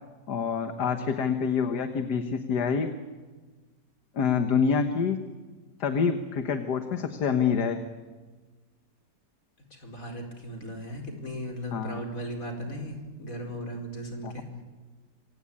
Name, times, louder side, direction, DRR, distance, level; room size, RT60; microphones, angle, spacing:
voice 1, 0.3-2.9 4.1-5.2 5.8-7.8 11.7-12.0 14.2-14.3, left 6 dB, 65° left, 7 dB, 1.9 m, -26 dB
voice 2, 9.8-14.4, equal, 50° left, 3 dB, 5.1 m, -37 dB
27.0 x 25.0 x 8.7 m, 1.3 s
omnidirectional pair, 1.9 m